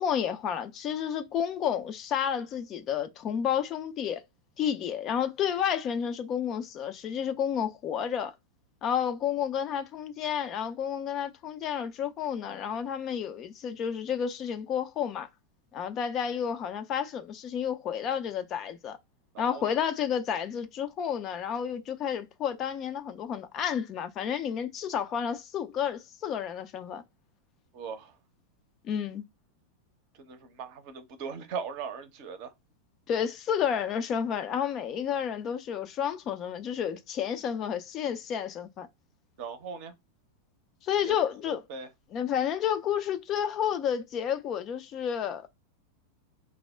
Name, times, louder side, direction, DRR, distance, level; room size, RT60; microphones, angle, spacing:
voice 1, 0.0-4.2 4.6-8.3 8.8-15.3 15.7-19.0 19.4-27.0 28.8-29.2 33.1-38.9 40.8-41.6 42.1-45.5, left 8 dB, 35° left, 0.4 m, -31 dB
voice 2, 19.3-19.7 27.7-28.1 30.2-32.5 39.4-39.9 41.0-41.2 41.4-41.9, right 6 dB, 45° right, 0.6 m, -39 dB
2.2 x 2.0 x 3.3 m
figure-of-eight pair, 90°, 0 cm